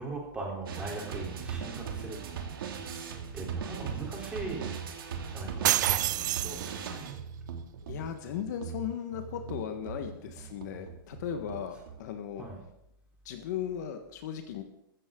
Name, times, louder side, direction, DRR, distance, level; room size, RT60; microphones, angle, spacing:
voice 1, 0.0-2.2 3.3-4.7 5.3-6.9 12.4-12.6, right 3 dB, 10° right, -2 dB, 3.6 m, -39 dB
sound 1, 0.7-12.0, right 7 dB, 75° right, 2.5 m, -39 dB
sound 2, 5.6-7.1, right 14 dB, 55° right, 0.4 m, -28 dB
voice 2, 7.9-12.4 13.2-14.6, left 9 dB, 50° left, 6 dB, 1.4 m, -37 dB
15.0 x 14.0 x 3.8 m, 0.82 s
hypercardioid pair, 165°, 12 cm